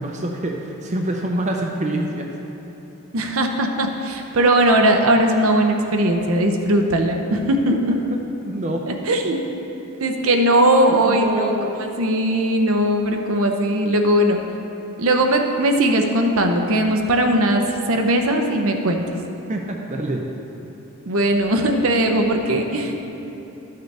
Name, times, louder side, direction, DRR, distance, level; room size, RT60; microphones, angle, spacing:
voice 1, 0.0-2.3 7.7-7.8 8.4-9.0 9.3-9.4 11.0-11.8 19.5-20.3, right 1 dB, 30° right, 1 dB, 0.6 m, -26 dB
voice 2, 3.1-7.9 8.9-9.4 10.0-11.5 12.0-14.4 15.0-19.0 21.1-23.0, right 1 dB, 70° right, 4 dB, 0.7 m, -19 dB
12.5 x 6.6 x 3.4 m, 3.0 s
head